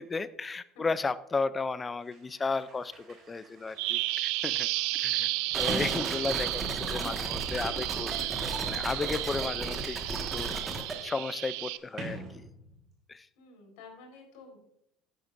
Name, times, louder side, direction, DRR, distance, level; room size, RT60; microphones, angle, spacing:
voice 1, 0.0-4.7 5.0-10.0 10.3-10.6 11.0-12.5 13.1-13.3, left 4 dB, 15° left, 16 dB, 0.4 m, -34 dB
Sliding door, 2.0-7.0 8.0-12.9, right 2 dB, 35° right, 4.1 m, -46 dB
Bird vocalization bird call bird song, 3.8-11.8, right 18 dB, 75° right, 0.4 m, -33 dB
sound 1, 5.5-10.9, right 2 dB, 15° right, 1.7 m, -35 dB
voice 2, 13.4-14.6, left 3 dB, 85° left, 2 dB, 4.4 m, -51 dB
14.0 x 9.6 x 2.6 m, 0.74 s
cardioid pair, 150°, 0 cm